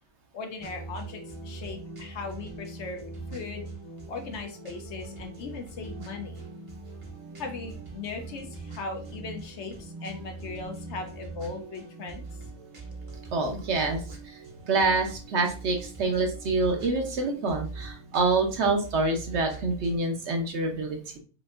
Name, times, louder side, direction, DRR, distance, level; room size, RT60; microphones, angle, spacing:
voice 1, 0.3-3.0 3.3-3.7 4.1-6.4 7.4-12.3, left 4 dB, 65° left, 4 dB, 0.9 m, -38 dB
sound 1, 0.6-20.0, right 3 dB, 30° right, 0.7 m, -42 dB
voice 2, 13.3-21.2, right 3 dB, 60° right, 3 dB, 1.0 m, -27 dB
5.1 x 2.6 x 2.4 m, 0.38 s
omnidirectional pair, 1.4 m